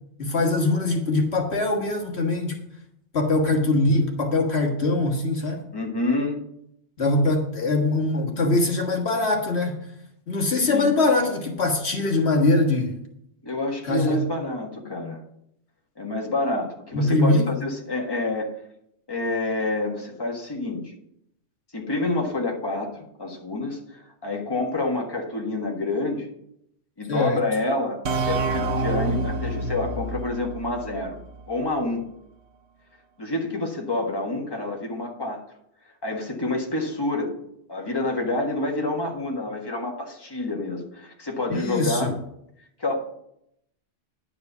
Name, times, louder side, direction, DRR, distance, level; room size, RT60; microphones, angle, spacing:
voice 1, 0.2-2.6 3.1-5.6 7.0-9.8 10.3-13.0 13.9-14.2 16.9-17.5 27.1-27.4 41.5-42.1, left 2 dB, 65° left, 2 dB, 1.8 m, -22 dB
voice 2, 5.7-6.4 10.6-10.9 13.4-15.2 16.0-18.5 19.1-20.8 21.7-26.3 27.0-31.2 31.5-32.1 33.2-35.4 36.0-37.3 37.7-42.1 42.8-43.0, left 2 dB, 20° left, 0 dB, 1.7 m, -28 dB
sound 1, 28.1-31.6, right 2 dB, 70° right, 1.1 m, -28 dB
10.5 x 5.0 x 8.1 m, 0.77 s
omnidirectional pair, 1.2 m